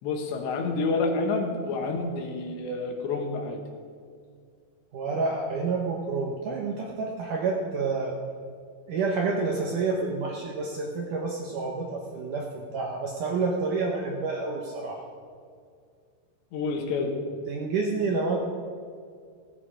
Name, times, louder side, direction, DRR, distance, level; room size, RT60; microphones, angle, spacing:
voice 1, 0.0-3.6 16.5-17.1, left 3 dB, 80° left, 2 dB, 3.8 m, -28 dB
voice 2, 4.9-8.1 8.9-15.0 17.5-18.4, right 4 dB, 65° right, 0 dB, 2.1 m, -29 dB
16.5 x 12.5 x 5.0 m, 2.2 s
omnidirectional pair, 5.0 m